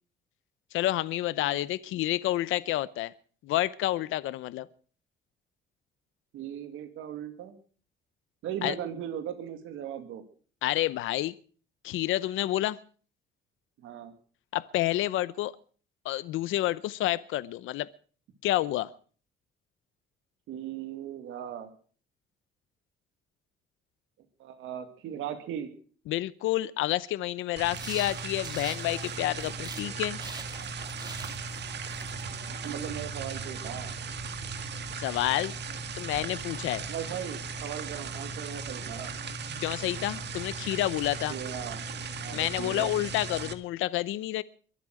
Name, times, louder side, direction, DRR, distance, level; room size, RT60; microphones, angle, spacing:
voice 1, 0.7-3.1 3.4-4.7 8.6-8.7 10.6-11.3 11.8-12.8 14.5-15.5 16.0-17.9 18.4-18.9 26.1-30.2 35.0-35.5 35.9-36.8 39.6-41.3 42.3-44.4, left 15 dB, 90° left, 0.7 m, -29 dB
voice 2, 6.3-7.5 8.4-10.2 13.8-14.1 20.5-21.7 24.4-25.7 32.6-33.9 36.9-39.1 41.3-41.8 42.2-42.9, right 9 dB, 85° right, 2.3 m, -38 dB
sound 1, 27.6-43.5, right 4 dB, 60° right, 1.8 m, -37 dB
sound 2, 27.7-29.9 30.2-32.8, right 3 dB, 20° right, 2.4 m, -45 dB
23.0 x 8.5 x 6.4 m
cardioid pair, 90°, 20 cm